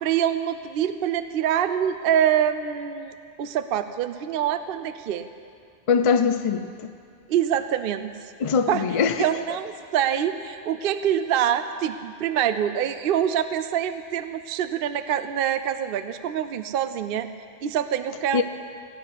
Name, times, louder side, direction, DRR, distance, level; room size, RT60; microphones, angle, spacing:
voice 1, 0.0-5.3 7.3-8.1 8.7-8.9 9.2-17.3 17.6-18.4, right 9 dB, 60° right, 11 dB, 0.7 m, -25 dB
voice 2, 5.9-6.9 8.4-9.3 18.3-18.4, left 6 dB, 55° left, 9 dB, 0.3 m, -22 dB
16.0 x 6.1 x 9.8 m, 2.2 s
omnidirectional pair, 1.2 m